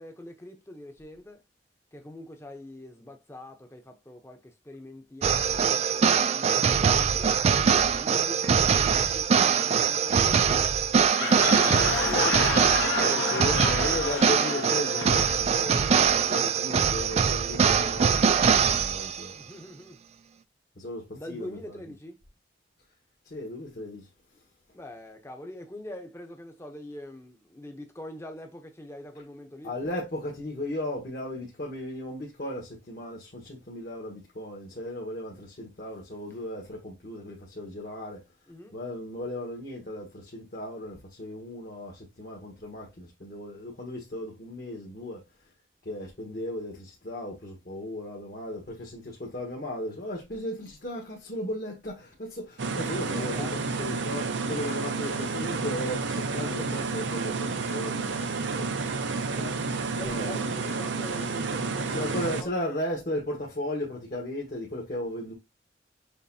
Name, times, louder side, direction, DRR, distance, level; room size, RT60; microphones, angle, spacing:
voice 1, 0.0-1.4 1.9-7.3 7.9-10.5 11.2-13.9 19.4-20.0 21.1-22.2 24.7-29.7 38.5-38.8 53.0-53.5 59.9-62.1 62.4-62.6, left 1 dB, 15° left, 0.7 m, -44 dB
sound 1, 5.2-19.3, right 6 dB, 35° right, 0.3 m, -23 dB
sound 2, 10.9-16.5, left 4 dB, 75° left, 1.1 m, -31 dB
voice 2, 13.0-18.3 18.6-19.3 20.8-21.0 21.3-21.6 23.3-24.0 29.6-38.2 38.7-41.9 42.2-45.2 45.8-58.1 58.6-58.7 59.4-59.5 60.0-60.6 61.9-65.3, left 1 dB, 55° left, 1.3 m, -36 dB
sound 3, 52.6-62.4, right 4 dB, 80° right, 0.7 m, -30 dB
6.6 x 2.5 x 2.7 m
head